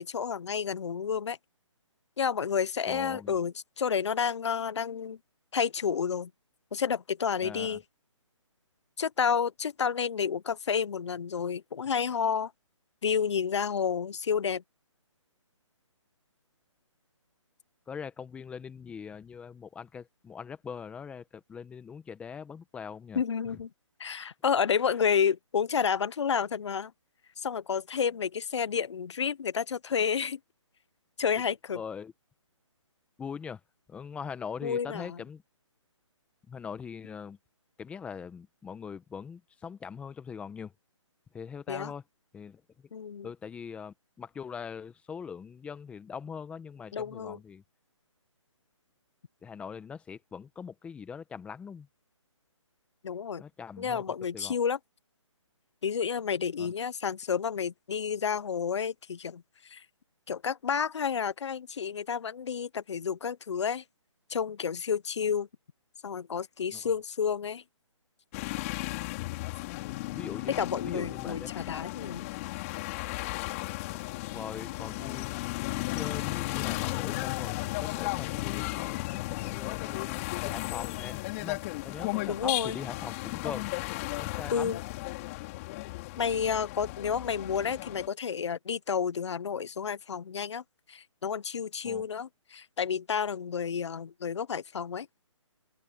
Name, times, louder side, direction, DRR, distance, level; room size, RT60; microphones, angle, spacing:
voice 1, 0.0-1.4 2.2-5.2 5.5-6.3 6.7-7.8 9.0-12.5 13.0-14.6 23.1-23.7 24.0-26.9 27.4-30.4 31.2-31.8 34.6-35.2 41.7-41.9 42.9-43.3 46.9-47.4 53.0-53.4 53.8-54.8 55.8-59.8 60.3-63.8 64.3-65.5 66.0-67.6 70.6-72.3 82.3-82.8 84.5-84.8 86.2-90.6 90.9-95.1, left 7 dB, 60° left, 1.1 m, -30 dB
voice 2, 2.9-3.4 7.4-7.8 17.9-23.6 31.7-32.1 33.2-33.6 33.9-35.4 36.5-37.4 37.8-40.7 41.3-42.0 42.3-42.6 43.2-47.6 49.4-51.9 53.4-54.6 56.6-56.7 66.7-66.9 70.1-70.6 70.8-71.5 74.3-75.3 75.7-83.7 84.2-84.7 91.8-92.1, left 6 dB, 5° left, 1.4 m, -42 dB
sound 1, 68.3-88.1, left 21 dB, 25° left, 3.7 m, -35 dB
open air
hypercardioid pair, 150°, 16 cm